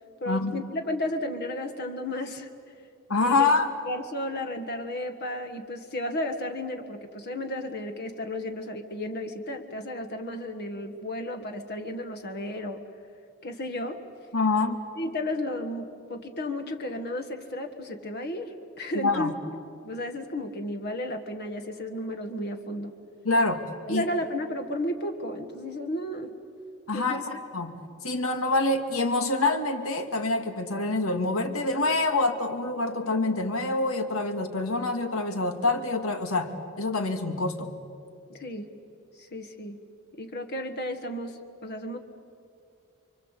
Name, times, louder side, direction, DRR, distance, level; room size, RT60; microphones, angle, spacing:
voice 1, 0.2-2.5 3.2-3.5 3.8-12.8 13.4-14.1 15.0-19.6 19.8-22.9 23.9-26.3 26.9-27.2 38.3-38.7 39.1-39.8 40.2-42.0, left 1 dB, 50° left, 6 dB, 1.6 m, -33 dB
voice 2, 3.1-3.7 14.3-14.8 18.9-19.3 23.2-24.1 26.9-27.2 27.5-27.7 28.0-37.7, left 3 dB, 90° left, 7 dB, 2.2 m, -26 dB
29.0 x 24.0 x 8.2 m, 2.5 s
head